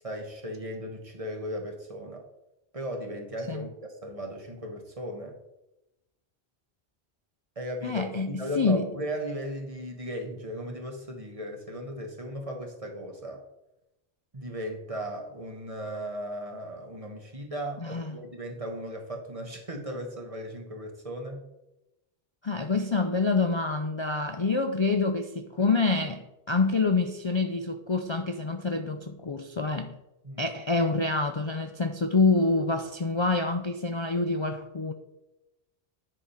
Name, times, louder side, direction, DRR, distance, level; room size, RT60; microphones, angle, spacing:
voice 1, 0.0-2.2 2.7-5.4 7.6-13.4 14.3-21.4 30.2-30.5, equal, 35° right, 1.3 m, -36 dB
voice 2, 7.8-8.9 17.8-18.2 22.4-29.9 30.4-34.9, left 3 dB, 45° left, 0.4 m, -27 dB
10.0 x 3.7 x 5.6 m
omnidirectional pair, 1.1 m